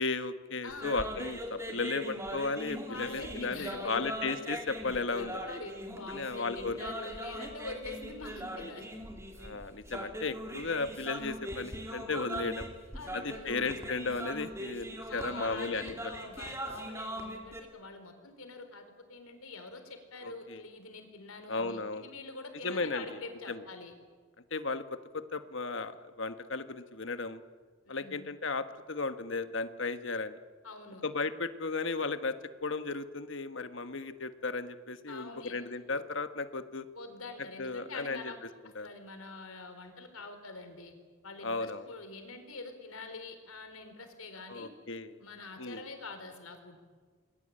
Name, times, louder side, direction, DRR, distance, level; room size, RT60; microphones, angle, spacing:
voice 1, 0.0-5.4 6.1-6.8 9.4-12.7 13.1-15.9 20.2-20.6 21.5-22.1 22.6-23.0 23.5-23.6 24.5-24.8 25.3-27.4 27.9-30.4 31.0-36.9 37.6-38.3 38.7-38.9 41.4-41.9 44.5-45.2 45.6-45.8, left 3 dB, 60° left, 10 dB, 1.4 m, -35 dB
voice 2, 0.6-1.1 2.9-4.0 5.2-8.9 12.9-13.9 15.1-23.9 27.8-28.3 30.6-31.0 35.1-35.6 36.9-38.4 38.8-40.9 41.2-44.7 45.2-46.8, left 3 dB, 85° left, 7 dB, 4.4 m, -45 dB
sound 1, 0.7-17.6, right 1 dB, 15° right, 2.8 m, -41 dB
28.0 x 21.5 x 8.9 m, 1.5 s
head